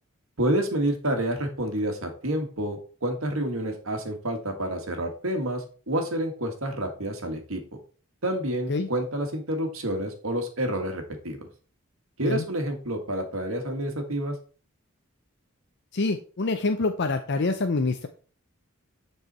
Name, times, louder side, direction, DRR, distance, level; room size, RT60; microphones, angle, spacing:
voice 1, 0.4-7.6 8.2-11.4 12.2-14.3, right 1 dB, 75° right, 4 dB, 2.0 m, -29 dB
voice 2, 15.9-18.1, left 3 dB, 55° left, 7 dB, 0.6 m, -26 dB
9.6 x 4.7 x 4.3 m, 0.39 s
head